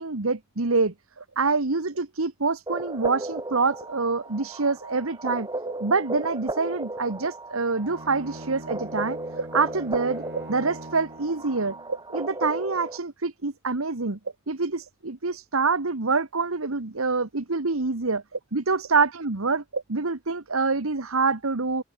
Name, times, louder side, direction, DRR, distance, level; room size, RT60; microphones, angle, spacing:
voice 1, 0.0-14.2 14.5-21.8, right 4 dB, 80° right, 1.5 m, -26 dB
sound 1, 2.7-13.0, right 2 dB, 20° right, 4.6 m, -35 dB
Bowed string instrument, 7.8-12.0, right 1 dB, 60° right, 3.4 m, -43 dB
head